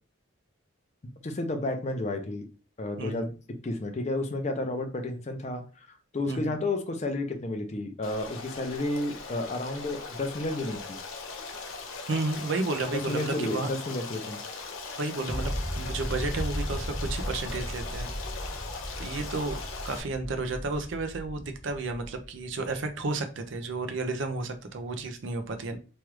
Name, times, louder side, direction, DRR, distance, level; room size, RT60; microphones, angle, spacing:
voice 1, 1.2-2.4 2.8-3.3 3.6-5.9 6.1-10.8 13.1-14.4, left 2 dB, 35° left, 6 dB, 0.5 m, -31 dB
voice 2, 3.0-3.3 6.3-6.5 12.1-13.7 15.0-18.1 19.0-19.6 19.8-25.8, right 3 dB, 70° right, 7 dB, 0.5 m, -32 dB
Stream, 8.0-20.0, left 4 dB, 85° left, 0.6 m, -40 dB
sound 1, 15.3-22.8, equal, 10° right, 0.5 m, -36 dB
3.1 x 2.4 x 3.1 m, 0.35 s
head